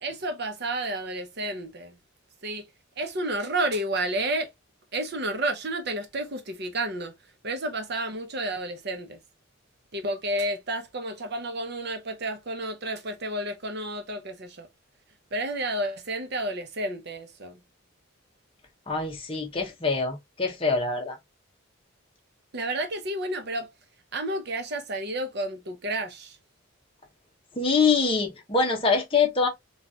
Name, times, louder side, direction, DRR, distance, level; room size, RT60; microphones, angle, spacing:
voice 1, 0.0-2.0 2.4-2.7 3.0-4.5 4.9-7.1 7.4-9.2 9.9-14.7 15.3-17.6 22.5-23.7 24.1-26.4, right 1 dB, 50° right, 0.7 m, -31 dB
voice 2, 18.9-21.2 27.6-29.5, left 4 dB, 25° left, 0.8 m, -24 dB
4.1 x 2.4 x 2.3 m
head